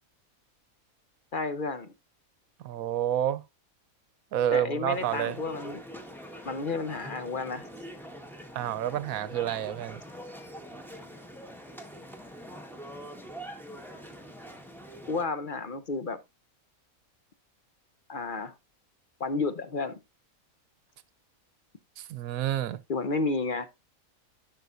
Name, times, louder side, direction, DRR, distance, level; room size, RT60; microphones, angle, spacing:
voice 1, 1.3-1.9 4.5-5.8 6.4-7.7 15.1-16.2 18.1-18.5 19.2-20.0 22.9-23.7, left 3 dB, 45° left, 0.8 m, -31 dB
voice 2, 2.6-3.4 4.3-5.4 8.5-10.0 22.0-22.8, right 11 dB, 80° right, 1.1 m, -29 dB
sound 1, 4.9-15.3, equal, ahead, 1.1 m, -44 dB
14.0 x 5.6 x 2.6 m
omnidirectional pair, 1.5 m